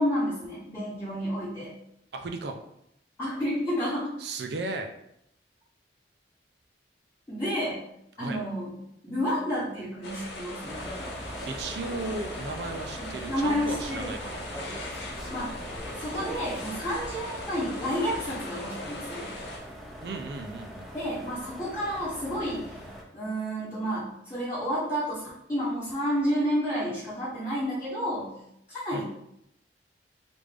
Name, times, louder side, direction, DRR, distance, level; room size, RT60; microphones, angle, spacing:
voice 1, 0.0-1.7 3.2-4.1 7.3-7.8 8.2-8.7 9.0-10.8 13.0-14.1 15.3-15.6 16.0-19.3 20.9-22.8 23.1-28.3 28.7-29.0, equal, 15° left, -13 dB, 1.0 m, -30 dB
voice 2, 2.1-2.6 4.2-4.9 8.2-8.4 11.5-14.5 20.0-20.9 28.9-29.0, right 3 dB, 65° right, 5 dB, 0.4 m, -35 dB
sound 1, 10.0-19.6, left 1 dB, 70° left, 0.7 m, -39 dB
sound 2, 10.7-23.0, equal, ahead, 0.5 m, -42 dB
3.4 x 2.5 x 3.3 m, 0.77 s
head